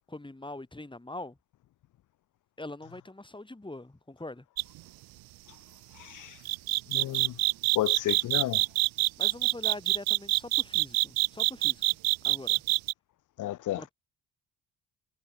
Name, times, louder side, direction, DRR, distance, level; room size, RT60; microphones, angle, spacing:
voice 1, 0.1-1.4 2.6-4.5 9.2-11.8 12.2-12.6 13.7-13.9, left 2 dB, 10° left, 5.3 m, -43 dB
sound 1, 4.6-4.8 6.5-12.9, right 21 dB, 65° right, 0.5 m, -25 dB
voice 2, 5.9-6.4 6.9-7.3 7.8-8.6 13.4-13.8, left 14 dB, 50° left, 0.6 m, -32 dB
supercardioid pair, 65°, 40 cm